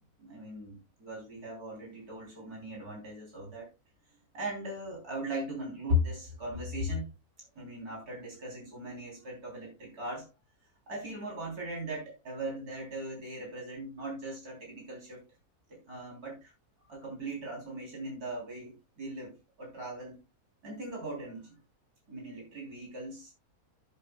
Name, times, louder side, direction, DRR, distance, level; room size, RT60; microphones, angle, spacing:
voice 1, 0.2-3.7 4.3-7.1 7.6-10.3 10.9-15.2 15.7-16.5 16.8-20.2 20.6-21.6 22.1-23.3, left 1 dB, 75° right, 3.9 m, -38 dB
13.5 x 8.2 x 2.2 m
omnidirectional pair, 1.6 m